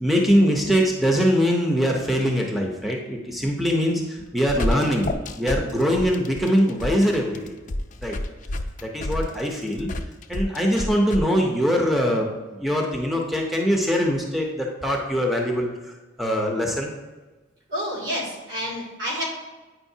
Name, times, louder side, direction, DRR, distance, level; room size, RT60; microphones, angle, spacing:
voice 1, 0.0-7.5 8.0-8.2 8.8-9.9 10.3-12.3 12.5-15.9 16.2-16.9, equal, ahead, 0 dB, 0.6 m, -22 dB
sound 1, 4.2-11.2, left 1 dB, 40° left, 0.5 m, -29 dB
voice 2, 17.7-19.2, equal, 75° right, -5 dB, 2.2 m, -29 dB
8.9 x 5.2 x 2.7 m, 1.2 s
head